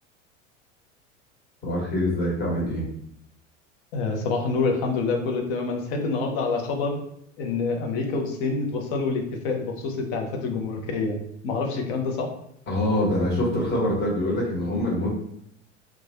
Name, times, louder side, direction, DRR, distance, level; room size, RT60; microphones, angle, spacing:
voice 1, 1.6-2.9 12.7-15.1, left 1 dB, 30° left, -5 dB, 1.4 m, -24 dB
voice 2, 3.9-7.0 7.4-11.2 11.4-12.3, left 4 dB, 45° left, 3 dB, 0.7 m, -27 dB
2.8 x 2.3 x 2.7 m, 0.71 s
figure-of-eight pair, 80°, 37 cm